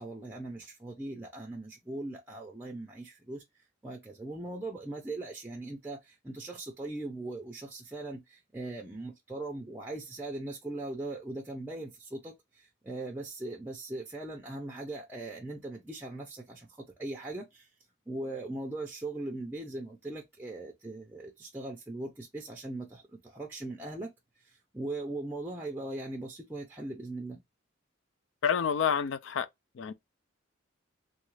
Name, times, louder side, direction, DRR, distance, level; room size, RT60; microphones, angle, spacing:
voice 1, 0.0-3.4 3.8-17.7 18.1-24.1 24.4-27.4, right 2 dB, 10° right, 0.5 m, -40 dB
voice 2, 28.4-29.5 29.8-29.9, left 7 dB, 65° left, 0.3 m, -28 dB
3.1 x 2.4 x 3.1 m
head